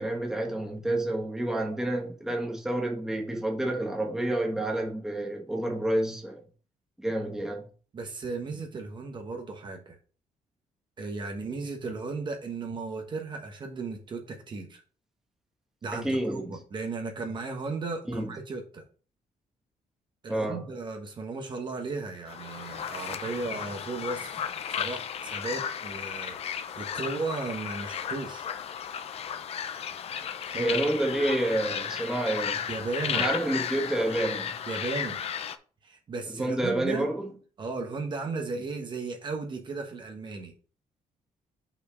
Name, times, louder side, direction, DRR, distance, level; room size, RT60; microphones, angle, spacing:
voice 1, 0.0-6.4 7.0-7.7 15.9-16.6 18.1-18.3 20.3-20.7 30.5-32.7 33.1-34.5 36.3-37.3, right 1 dB, 5° right, 1.3 m, -29 dB
voice 2, 7.9-10.0 11.0-14.8 15.8-18.8 20.2-24.3 24.7-28.5 30.5-30.7 32.7-33.3 34.7-35.2 35.8-37.1 37.6-40.5, right 3 dB, 35° right, 1.1 m, -35 dB
sound 1, 22.3-35.6, left 8 dB, 45° left, 0.6 m, -34 dB
5.7 x 4.4 x 4.9 m
cardioid pair, 170°, 14 cm